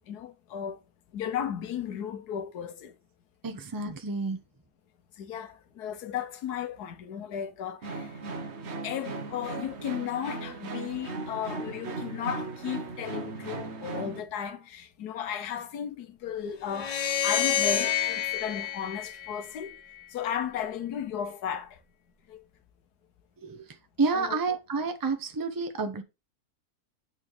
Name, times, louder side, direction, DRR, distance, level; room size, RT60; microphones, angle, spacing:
voice 1, 0.1-0.8 1.1-2.9 5.2-8.1 8.8-19.8 20.1-21.8 22.3-22.4 24.1-24.4, left 8 dB, 90° left, 1.4 m, -35 dB
voice 2, 3.4-4.4 23.4-23.6 24.0-26.0, right 4 dB, 20° right, 0.6 m, -29 dB
sound 1, 7.8-14.2, right 3 dB, 50° right, 1.1 m, -37 dB
sound 2, 16.7-20.0, left 10 dB, 60° left, 0.4 m, -29 dB
9.1 x 4.1 x 3.2 m
omnidirectional pair, 1.6 m